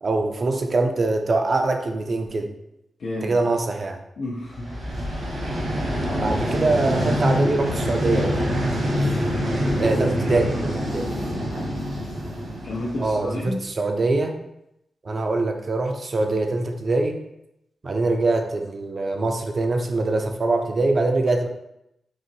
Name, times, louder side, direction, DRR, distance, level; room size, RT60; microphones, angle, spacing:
voice 1, 0.0-2.5 3.2-4.0 6.2-8.4 9.8-11.1 13.0-14.3 15.0-17.2 17.8-21.5, right 2 dB, 40° right, 5 dB, 0.4 m, -23 dB
voice 2, 3.0-3.4 4.2-4.8 6.0-6.4 10.8-11.4 12.6-13.7, left 1 dB, 75° left, -6 dB, 0.6 m, -32 dB
Vehicle, 4.5-13.5, equal, 85° right, 1.3 m, -25 dB
3.8 x 2.8 x 2.7 m, 0.83 s
wide cardioid pair, 125°, 0 cm